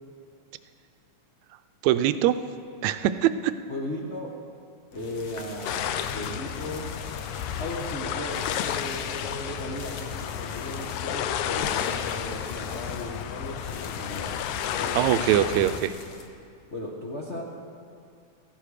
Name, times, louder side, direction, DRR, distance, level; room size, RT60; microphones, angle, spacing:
voice 1, 1.8-2.4 2.8-3.5 15.0-15.9, right 12 dB, 80° right, 11 dB, 1.9 m, -22 dB
voice 2, 3.7-4.3 4.9-6.9 7.6-14.4 14.7-15.0 16.7-17.4, left 1 dB, 45° left, -4 dB, 0.8 m, -36 dB
sound 1, 4.9-16.3, left 4 dB, 60° left, 1.2 m, -43 dB
sound 2, 5.7-15.8, left 9 dB, 80° left, 2.0 m, -32 dB
16.5 x 14.5 x 4.9 m, 2.4 s
omnidirectional pair, 3.3 m